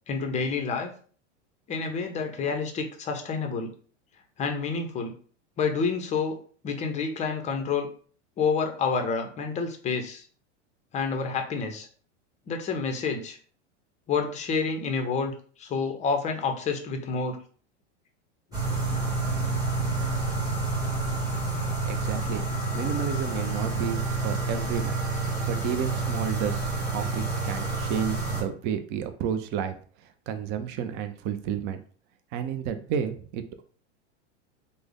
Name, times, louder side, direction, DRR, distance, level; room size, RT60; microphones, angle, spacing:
voice 1, 0.1-0.9 1.7-3.7 4.4-5.1 5.6-6.4 6.6-7.9 8.4-10.3 10.9-11.9 12.5-13.4 14.1-15.3 15.6-17.4, left 5 dB, 20° left, 5 dB, 0.5 m, -28 dB
sound 1, 18.5-28.4, right 3 dB, 10° right, 1.4 m, -28 dB
voice 2, 21.9-24.9 25.2-26.7 26.9-29.7 30.3-31.8 32.3-33.6, right 8 dB, 30° right, 9 dB, 0.4 m, -31 dB
3.2 x 2.1 x 3.6 m, 0.44 s
hypercardioid pair, 120°, 36 cm